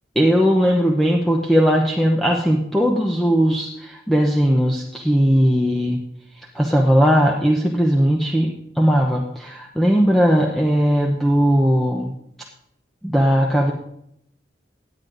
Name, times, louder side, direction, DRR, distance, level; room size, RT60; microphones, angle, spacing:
voice 1, 0.2-6.0 6.5-8.5 8.7-12.1 13.0-13.7, equal, ahead, -1 dB, 0.9 m, -18 dB
17.0 x 9.3 x 4.0 m, 0.76 s
head